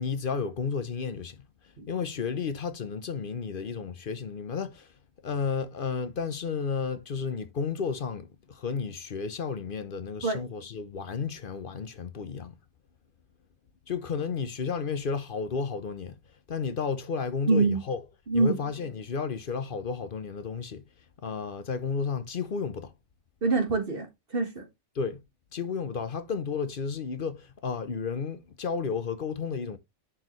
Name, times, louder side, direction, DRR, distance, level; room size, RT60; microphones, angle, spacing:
voice 1, 0.0-1.4 1.9-4.9 5.2-12.6 13.9-16.2 16.5-18.0 18.3-20.8 21.2-22.9 24.9-25.2 25.5-29.8, left 5 dB, 45° left, 0.8 m, -32 dB
voice 2, 17.5-17.8 18.3-18.6 23.4-24.7, right 3 dB, 45° right, 1.7 m, -25 dB
9.8 x 4.7 x 3.1 m
omnidirectional pair, 1.4 m